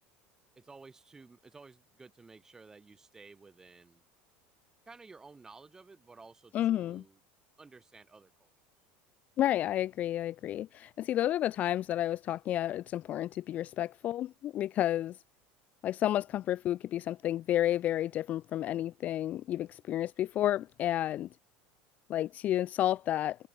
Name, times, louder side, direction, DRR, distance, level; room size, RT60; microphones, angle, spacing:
voice 1, 0.6-4.0 4.9-7.2 7.6-8.5, right 4 dB, 10° right, 6.7 m, -54 dB
voice 2, 6.5-7.0 9.4-15.2 15.8-21.3 22.1-23.4, left 12 dB, 30° left, 0.4 m, -31 dB
cardioid pair, 175°, 5 cm